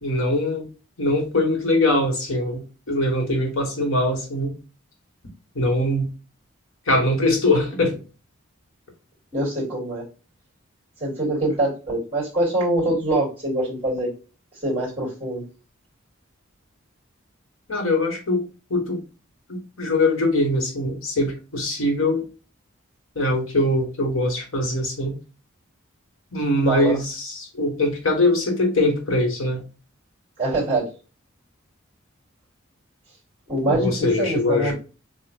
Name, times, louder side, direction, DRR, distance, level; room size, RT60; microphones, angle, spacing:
voice 1, 0.0-0.7 1.0-4.5 5.5-6.1 6.9-8.0 17.7-19.0 19.5-22.2 23.1-25.2 26.3-29.6 33.7-34.7, left 1 dB, 80° left, 2 dB, 1.4 m, -22 dB
voice 2, 9.3-10.0 11.0-14.1 14.6-15.4 26.6-27.0 30.4-30.8 33.5-34.7, right 1 dB, 25° right, -8 dB, 2.5 m, -24 dB
6.6 x 2.4 x 2.4 m, 0.32 s
head